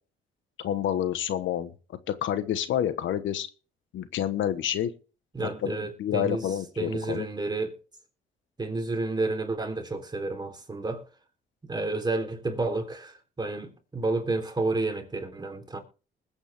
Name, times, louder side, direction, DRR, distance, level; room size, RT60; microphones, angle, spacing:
voice 1, 0.6-1.7 2.1-3.5 3.9-4.9 5.4-7.3, left 10 dB, 75° left, 1.3 m, -28 dB
voice 2, 5.3-6.5 6.8-7.8 8.6-11.0 11.6-15.8, right 3 dB, 20° right, 3.6 m, -30 dB
20.5 x 8.7 x 3.6 m
cardioid pair, 90°, 20 cm